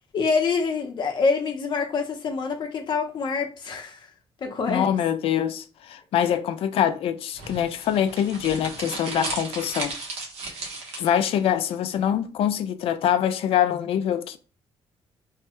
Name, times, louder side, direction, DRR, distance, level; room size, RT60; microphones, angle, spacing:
voice 1, 0.1-4.1 4.4-4.9, left 4 dB, 50° left, 0.8 m, -26 dB
voice 2, 4.7-9.9 11.0-14.4, left 9 dB, 65° left, 0.4 m, -24 dB
sound 1, 7.4-11.4, right 3 dB, 85° right, 1.1 m, -35 dB
3.1 x 2.2 x 2.8 m
cardioid pair, 160°, 10 cm